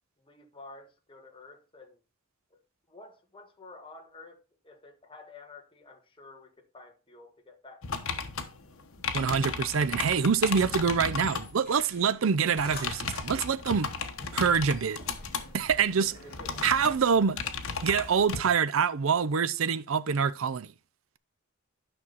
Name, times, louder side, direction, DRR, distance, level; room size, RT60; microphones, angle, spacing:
voice 1, 0.2-2.0 2.5-2.6 2.9-4.4 4.6-8.2 16.0-16.6, left 3 dB, 25° left, 1.6 m, -50 dB
sound 1, 7.8-11.5 12.6-18.4, left 5 dB, 75° left, 1.1 m, -35 dB
voice 2, 9.1-13.9 14.3-15.0 15.5-16.1 16.6-17.4 17.8-20.7, right 6 dB, 70° right, 0.5 m, -25 dB
sound 2, 10.4-18.5, left 2 dB, 45° left, 3.4 m, -48 dB
10.0 x 6.0 x 4.1 m
head